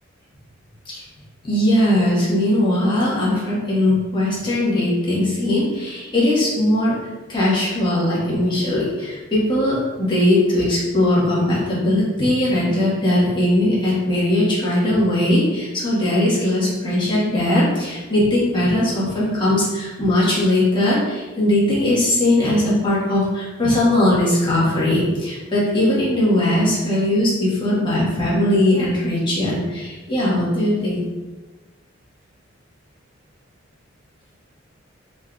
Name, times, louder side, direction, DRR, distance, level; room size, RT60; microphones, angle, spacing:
voice 1, 1.4-7.0 7.3-31.0, left 1 dB, 25° left, -8 dB, 1.4 m, -19 dB
4.1 x 3.9 x 2.4 m, 1.2 s
head